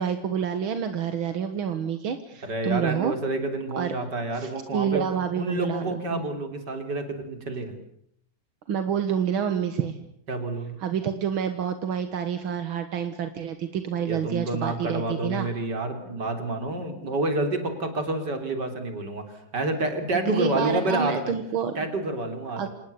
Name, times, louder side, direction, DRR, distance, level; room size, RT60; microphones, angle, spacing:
voice 1, 0.0-3.1 3.8-3.9 4.3-6.2 8.7-10.0 10.8-15.5 20.1-21.7 22.6-22.7, right 8 dB, 85° right, 9 dB, 2.3 m, -28 dB
voice 2, 2.4-5.0 5.4-7.7 10.3-10.8 14.1-21.3 21.8-22.7, right 2 dB, 55° right, 7 dB, 4.2 m, -29 dB
27.5 x 19.0 x 8.4 m, 0.69 s
omnidirectional pair, 2.2 m